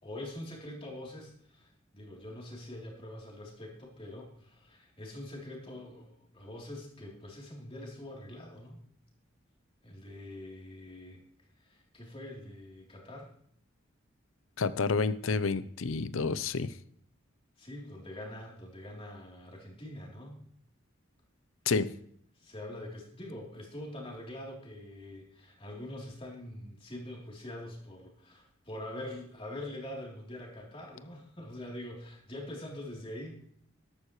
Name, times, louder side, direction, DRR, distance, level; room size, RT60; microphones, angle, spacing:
voice 1, 0.0-8.8 9.8-11.2 11.6-13.3 17.6-20.4 22.4-33.4, left 1 dB, 25° left, -2 dB, 3.4 m, -44 dB
voice 2, 14.6-16.7 21.7-21.9, left 4 dB, 75° left, 15 dB, 0.6 m, -29 dB
13.0 x 12.0 x 3.2 m, 0.64 s
head